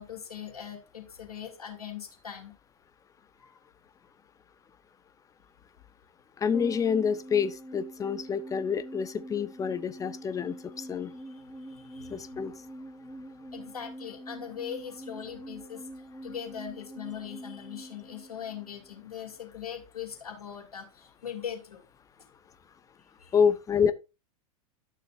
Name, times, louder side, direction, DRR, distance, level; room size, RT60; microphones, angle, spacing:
voice 1, 0.0-2.5 3.4-3.6 10.9-12.2 13.5-15.9 16.2-21.8 22.2-22.3 23.0-23.4, left 8 dB, 80° left, 3.0 m, -41 dB
voice 2, 6.4-11.1 12.1-12.5 23.3-23.9, left 6 dB, 20° left, 0.8 m, -27 dB
sound 1, 6.5-19.1 19.3-19.4, right 1 dB, ahead, 4.6 m, -45 dB
12.0 x 6.7 x 2.5 m
hypercardioid pair, 100°, 19 cm